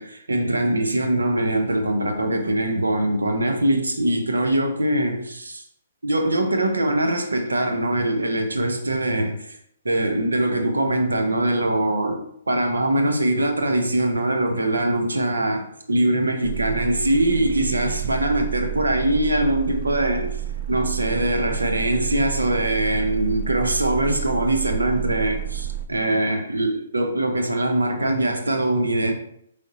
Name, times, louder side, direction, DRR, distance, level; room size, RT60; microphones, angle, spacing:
voice 1, 0.0-5.6 6.0-9.5 9.8-12.2 12.5-20.3 20.7-29.1, right 1 dB, 85° right, 0.7 m, -22 dB
sound 1, 16.4-25.9, right 11 dB, 50° right, 0.4 m, -30 dB
4.7 x 3.4 x 2.8 m
hypercardioid pair, 135°, 0 cm